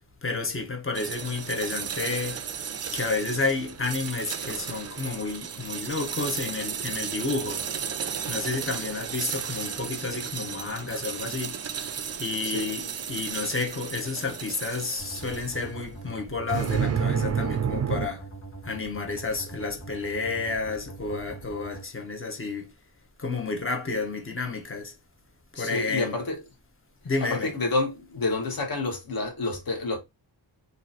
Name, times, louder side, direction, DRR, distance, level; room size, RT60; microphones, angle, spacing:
voice 1, 0.2-2.5 2.9-7.8 8.3-11.6 12.2-18.3 18.6-22.7 23.2-24.9 25.5-26.2 27.0-27.5, left 3 dB, 25° left, 0.9 m, -31 dB
sound 1, 0.9-15.8 16.5-18.1, right 7 dB, 35° right, 0.4 m, -32 dB
sound 2, 15.0-21.8, right 3 dB, 65° left, 1.5 m, -43 dB
voice 2, 25.5-26.3 27.3-30.0, left 2 dB, 45° left, 1.2 m, -28 dB
2.8 x 2.6 x 4.0 m
wide cardioid pair, 100°, 48 cm